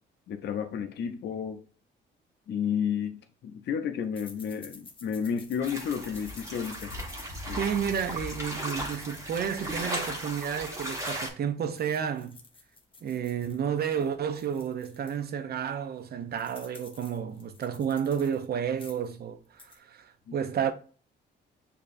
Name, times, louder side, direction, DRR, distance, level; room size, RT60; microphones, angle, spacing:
voice 1, 0.3-1.6 2.5-6.9 7.5-7.6 20.3-20.4, left 7 dB, 60° left, 0.6 m, -32 dB
sound 1, 4.1-11.3 11.6-15.2 15.7-15.8 16.0-18.4 18.7-19.1 19.4-19.8, left 4 dB, 25° left, 0.8 m, -52 dB
sound 2, 5.6-11.3, equal, 15° right, 1.4 m, -36 dB
voice 2, 7.6-12.4 13.0-20.7, right 8 dB, 50° right, 0.6 m, -31 dB
6.7 x 2.8 x 2.5 m
cardioid pair, 90°, 20 cm